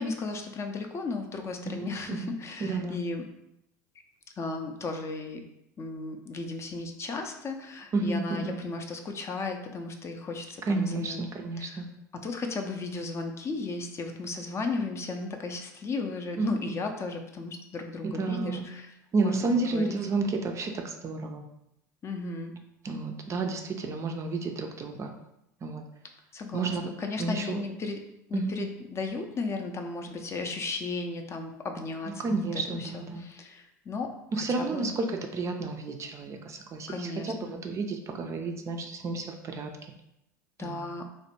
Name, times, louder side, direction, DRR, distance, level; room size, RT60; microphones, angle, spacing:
voice 1, 0.0-3.3 4.4-5.4 5.8-11.2 11.6-11.8 12.2-18.9 19.2-19.4 19.7-20.0 22.0-22.5 26.3-28.0 28.3-32.4 32.7-34.9 36.9-37.6 40.6-41.1, left 3 dB, 30° left, 4 dB, 0.4 m, -35 dB
voice 2, 1.6-2.3 2.6-3.0 7.9-8.5 10.7-11.9 16.4-16.5 18.0-18.7 19.1-21.4 22.8-25.1 25.6-25.8 26.5-26.9 27.2-27.6 28.3-28.6 32.2-33.2 34.3-39.8 40.6-40.9, right 3 dB, 30° right, 4 dB, 0.4 m, -31 dB
3.1 x 2.1 x 2.9 m, 0.82 s
hypercardioid pair, 80°, 10 cm